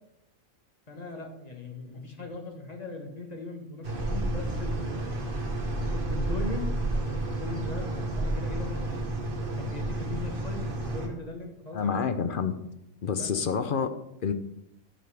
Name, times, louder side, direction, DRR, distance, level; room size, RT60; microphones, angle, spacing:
voice 1, 0.9-5.1 5.9-8.7 9.6-12.0 13.2-13.3, left 2 dB, 30° left, 3 dB, 1.4 m, -39 dB
sound 1, 3.8-11.1, right 1 dB, 40° right, 1.5 m, -31 dB
voice 2, 11.7-12.5 13.0-13.9 14.2-14.3, left 6 dB, 50° left, 10 dB, 0.7 m, -28 dB
12.0 x 7.7 x 3.4 m, 0.82 s
omnidirectional pair, 1.4 m